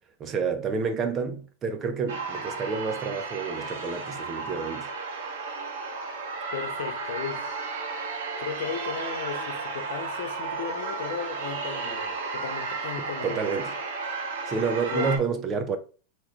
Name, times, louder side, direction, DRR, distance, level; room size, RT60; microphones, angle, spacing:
voice 1, 0.2-4.9 13.0-13.8 14.5-15.8, right 5 dB, 20° right, 0.5 m, -29 dB
sound 1, 2.1-15.2, right 4 dB, 80° right, 1.2 m, -33 dB
voice 2, 6.5-7.5 8.4-13.5 14.9-15.3, left 8 dB, 65° left, 1.0 m, -35 dB
3.7 x 3.0 x 2.9 m
supercardioid pair, 170°, 0 cm